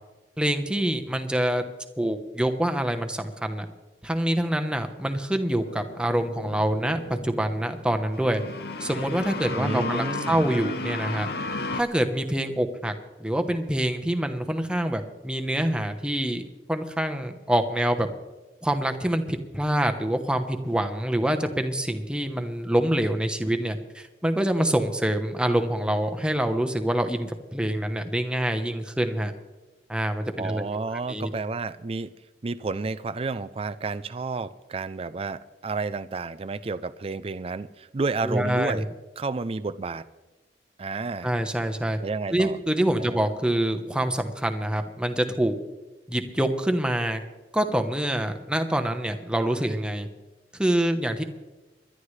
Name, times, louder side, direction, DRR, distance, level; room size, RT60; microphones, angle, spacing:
voice 1, 0.4-1.6 2.0-3.7 4.0-8.4 8.8-11.3 11.7-12.9 13.2-16.4 16.7-18.1 18.6-29.3 29.9-30.6 31.1-31.3 38.2-38.8 41.2-42.0 42.3-45.6 46.1-47.2 47.5-50.1 50.6-51.2, right 1 dB, 5° right, 5 dB, 1.0 m, -26 dB
sound 1, 5.5-11.8, left 3 dB, 65° left, 0.8 m, -34 dB
voice 2, 9.5-10.4 30.4-32.1 32.4-38.8 39.2-40.0 40.8-41.3 42.0-42.6 43.0-43.2, right 3 dB, 35° right, 13 dB, 0.4 m, -31 dB
27.5 x 11.5 x 3.3 m, 1.2 s
head